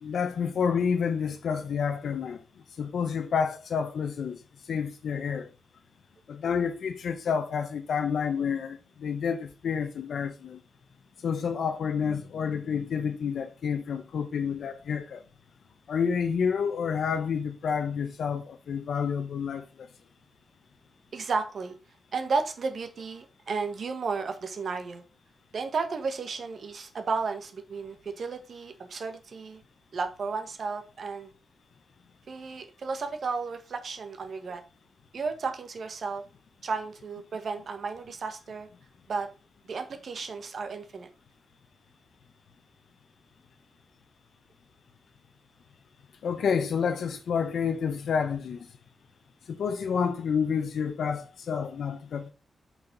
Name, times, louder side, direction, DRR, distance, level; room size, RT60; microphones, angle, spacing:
voice 1, 0.0-2.4 2.8-4.4 4.7-5.5 6.3-10.6 11.2-15.2 15.9-19.9 46.2-48.7 49.5-52.3, left 6 dB, 80° left, 0.8 m, -29 dB
voice 2, 21.1-21.8 22.1-25.0 25.5-29.6 29.9-31.3 32.3-34.6 35.1-36.2 36.6-38.7 39.1-39.3 39.6-41.1, right 4 dB, 55° right, 1.6 m, -33 dB
9.1 x 5.7 x 4.0 m
wide cardioid pair, 160°, 0 cm